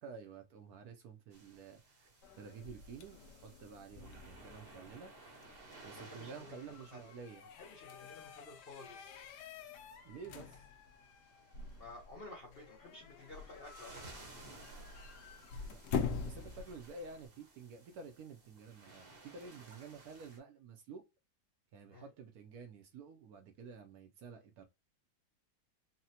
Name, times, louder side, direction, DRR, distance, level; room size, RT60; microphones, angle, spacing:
voice 1, 0.0-5.1 5.8-7.4 10.0-10.7 15.7-21.0 21.7-24.6, right 5 dB, 70° right, 0.9 m, -51 dB
sound 1, 1.3-20.4, right 3 dB, 45° right, 0.8 m, -58 dB
sound 2, 2.2-17.3, left 6 dB, 75° left, 1.1 m, -46 dB
voice 2, 6.0-7.1 7.6-9.2 11.8-14.1 21.9-22.1, left 2 dB, 55° left, 0.6 m, -53 dB
4.0 x 2.1 x 2.7 m
omnidirectional pair, 1.9 m